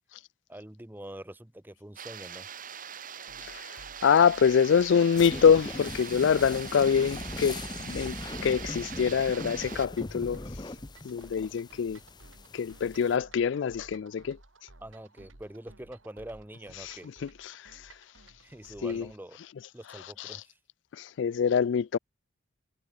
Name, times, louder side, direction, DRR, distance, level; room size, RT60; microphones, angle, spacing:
voice 1, 0.5-2.5 14.8-17.1 18.4-19.4 19.7-20.6, right 1 dB, 10° right, 0.8 m, -45 dB
sound 1, 2.0-9.9, right 8 dB, 40° right, 2.3 m, -43 dB
sound 2, 3.3-19.1, right 2 dB, 80° right, 3.3 m, -56 dB
voice 2, 4.0-7.6 7.8-8.1 8.4-10.4 11.0-12.0 12.5-14.4 18.8-19.0 21.0-22.0, left 7 dB, 65° left, 0.3 m, -24 dB
sound 3, 5.1-13.2, left 2 dB, 20° left, 0.7 m, -40 dB
head